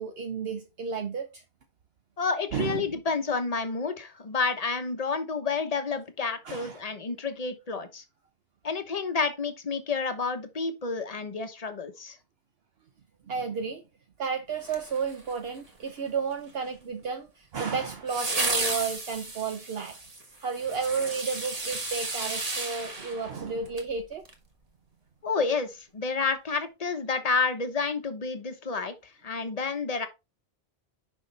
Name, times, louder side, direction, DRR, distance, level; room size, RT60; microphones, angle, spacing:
voice 1, 0.0-1.4 2.5-3.0 6.4-6.8 13.2-13.8 14.2-20.0 20.4-24.2, right 5 dB, 65° right, 1.0 m, -32 dB
voice 2, 2.2-8.0 8.6-12.2 25.2-30.1, left 4 dB, 40° left, 1.0 m, -30 dB
sound 1, 14.6-15.6 18.1-23.9 24.3-24.4, right 2 dB, 35° right, 1.4 m, -33 dB
6.4 x 5.5 x 3.3 m
omnidirectional pair, 1.1 m